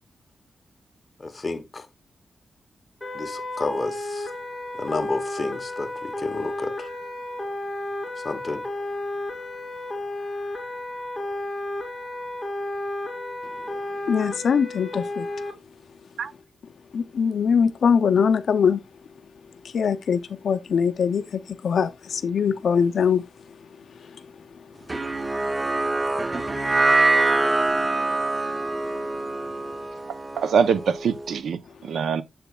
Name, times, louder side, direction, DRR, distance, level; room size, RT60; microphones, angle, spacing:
voice 1, 1.2-1.9 3.1-4.3 4.7-6.9 8.2-8.7, left 3 dB, 30° left, 1.0 m, -31 dB
sound 1, 3.0-15.5, left 1 dB, 5° left, 2.6 m, -32 dB
voice 2, 14.1-15.3 16.9-18.8 19.6-23.2 24.1-24.2, left 6 dB, 65° left, 0.5 m, -22 dB
sound 2, 24.9-31.3, right 2 dB, 20° right, 0.5 m, -24 dB
voice 3, 30.4-32.2, right 6 dB, 85° right, 0.6 m, -23 dB
7.1 x 6.9 x 2.3 m
wide cardioid pair, 140°, 0 cm